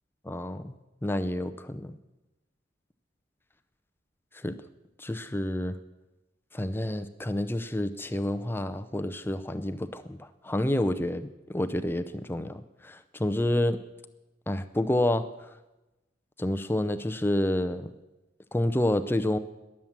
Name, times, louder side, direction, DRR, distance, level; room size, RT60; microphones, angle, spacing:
voice 1, 0.2-0.8 1.0-2.0 4.4-4.6 5.0-5.8 6.5-13.8 14.5-15.2 16.4-17.9 18.5-19.4, left 1 dB, 10° left, 9 dB, 0.6 m, -29 dB
20.5 x 7.5 x 7.3 m, 1.0 s
head